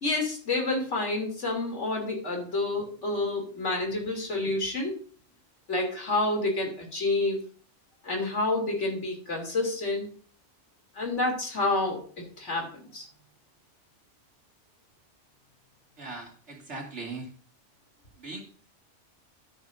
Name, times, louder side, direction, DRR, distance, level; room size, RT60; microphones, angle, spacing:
voice 1, 0.0-5.0 5.7-7.4 8.0-10.1 11.0-13.1, left 2 dB, 75° left, 1 dB, 3.4 m, -29 dB
voice 2, 16.0-17.3 18.2-18.4, right 3 dB, 70° right, 0 dB, 2.9 m, -39 dB
12.5 x 9.8 x 2.7 m, 0.43 s
omnidirectional pair, 1.2 m